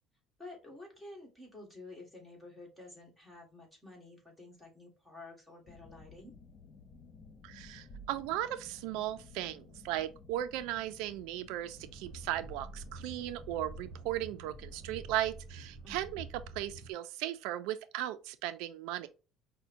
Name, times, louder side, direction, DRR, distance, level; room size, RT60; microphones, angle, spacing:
voice 1, 0.4-6.3 15.8-16.2, left 2 dB, 5° left, 1.5 m, -51 dB
sound 1, 5.7-15.2, left 3 dB, 35° left, 0.6 m, -55 dB
voice 2, 7.4-16.3 16.6-19.1, right 13 dB, 85° right, 0.4 m, -37 dB
sound 2, 11.7-16.9, right 3 dB, 45° right, 0.7 m, -48 dB
5.4 x 2.2 x 2.5 m
cardioid pair, 140°, 0 cm